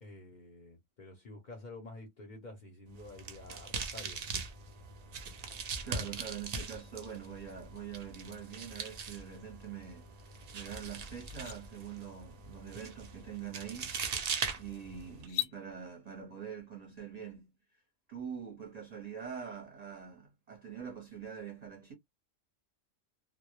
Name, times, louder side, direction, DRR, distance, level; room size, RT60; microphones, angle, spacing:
voice 1, 0.0-4.2, left 2 dB, 50° left, 0.6 m, -49 dB
sound 1, 2.9-15.3, right 5 dB, 75° right, 0.3 m, -41 dB
voice 2, 5.8-10.1 10.5-14.1 14.6-17.5 18.1-21.9, right 8 dB, 40° right, 0.7 m, -44 dB
sound 2, 10.6-10.7 11.1-11.6 13.2-13.3 13.8-14.1 15.2-15.6, left 15 dB, 75° left, 0.9 m, -38 dB
2.1 x 2.0 x 2.8 m
omnidirectional pair, 1.3 m